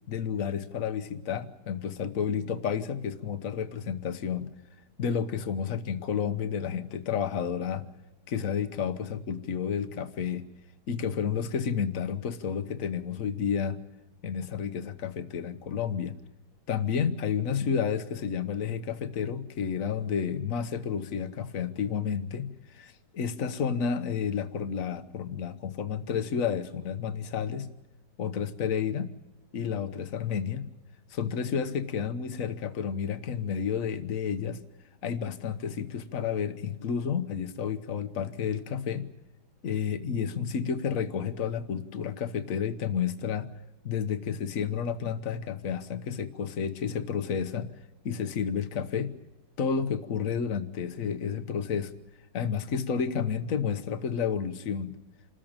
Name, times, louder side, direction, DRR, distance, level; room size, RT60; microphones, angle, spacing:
voice 1, 0.1-4.5 5.0-7.8 8.3-10.4 10.9-13.8 14.2-16.1 16.7-27.7 28.2-29.1 29.5-30.7 31.1-34.6 35.0-39.1 39.6-43.5 43.8-47.7 48.0-49.1 49.6-51.9 52.3-55.0, left 7 dB, 50° left, 11 dB, 1.4 m, -31 dB
27.0 x 14.0 x 8.8 m, 1.0 s
omnidirectional pair, 1.9 m